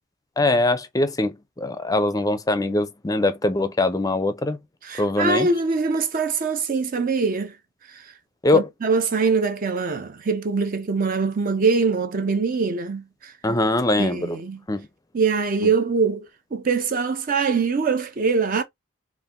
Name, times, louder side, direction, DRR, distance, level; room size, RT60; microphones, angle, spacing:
voice 1, 0.4-4.6 5.0-5.5 8.4-8.7 13.4-14.4 14.7-14.9, left 2 dB, 15° left, 0.5 m, -22 dB
voice 2, 4.8-7.5 7.9-8.1 8.5-13.3 14.0-14.6 15.1-18.6, right 4 dB, 40° right, 0.5 m, -23 dB
4.0 x 2.5 x 3.6 m
head